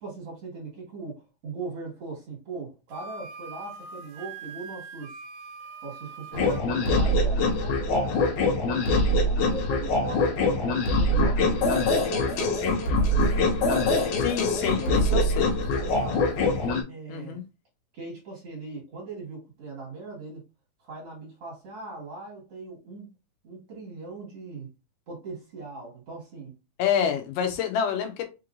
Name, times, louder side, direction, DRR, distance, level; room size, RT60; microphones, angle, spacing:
voice 1, 0.0-5.2 5.8-8.2 8.5-9.1 9.4-11.7 12.1-14.0 14.8-15.2 15.6-16.3 16.9-17.4 17.9-20.4 20.8-23.1 23.4-24.7 25.1-26.5, right 3 dB, 50° right, 2.6 m, -40 dB
Wind instrument woodwind instrument, 2.9-6.6, right 5 dB, 80° right, 2.0 m, -42 dB
sound 1, 6.3-16.8, left 2 dB, 75° left, 2.2 m, -24 dB
voice 2, 14.2-15.5 17.1-17.4 26.8-28.2, left 8 dB, 90° left, 2.4 m, -27 dB
5.5 x 3.1 x 2.5 m
omnidirectional pair, 3.7 m